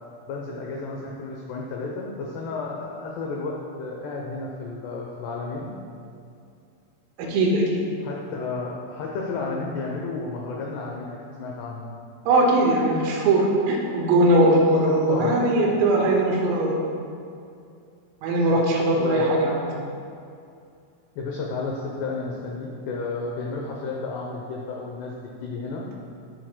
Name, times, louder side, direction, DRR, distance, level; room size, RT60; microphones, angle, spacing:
voice 1, 0.3-5.7 8.0-11.9 15.1-15.3 18.5-18.6 18.9-19.3 21.2-25.2 25.4-25.9, left 3 dB, 85° left, -1 dB, 2.3 m, -32 dB
voice 2, 7.2-7.8 12.3-16.7 18.2-19.7, right 1 dB, 80° right, -2 dB, 3.9 m, -20 dB
19.0 x 7.7 x 2.2 m, 2.5 s
omnidirectional pair, 6.0 m